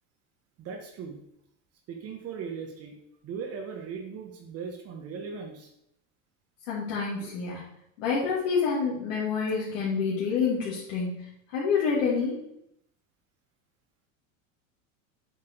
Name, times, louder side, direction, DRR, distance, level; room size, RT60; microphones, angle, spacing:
voice 1, 0.6-1.2 1.9-2.9 3.2-5.7, right 6 dB, 35° right, 3 dB, 1.3 m, -38 dB
voice 2, 6.7-7.6 8.0-12.4, left 5 dB, 65° left, -7 dB, 2.7 m, -28 dB
8.0 x 5.9 x 4.6 m, 0.78 s
supercardioid pair, 130°, 40 cm